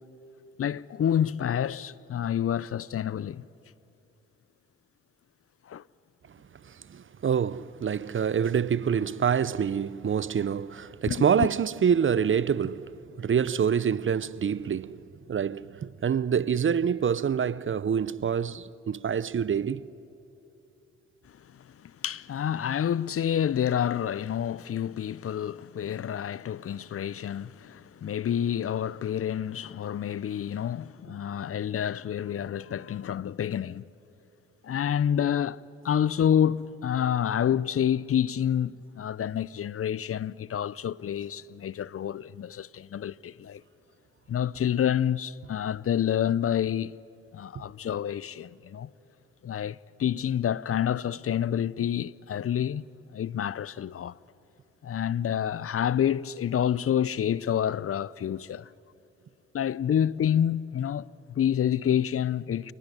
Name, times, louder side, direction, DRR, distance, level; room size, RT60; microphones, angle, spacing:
voice 1, 0.6-3.4 5.7-5.8 11.1-11.5 21.8-33.9 34.6-43.6 44.3-47.0 47.3-48.9 49.4-52.9 53.1-54.2 54.8-58.7 59.5-62.7, left 9 dB, 50° left, 0.6 m, -28 dB
voice 2, 6.7-15.0 15.3-19.9, right 7 dB, 40° right, 0.7 m, -26 dB
27.5 x 20.0 x 9.8 m
hypercardioid pair, 45°, 31 cm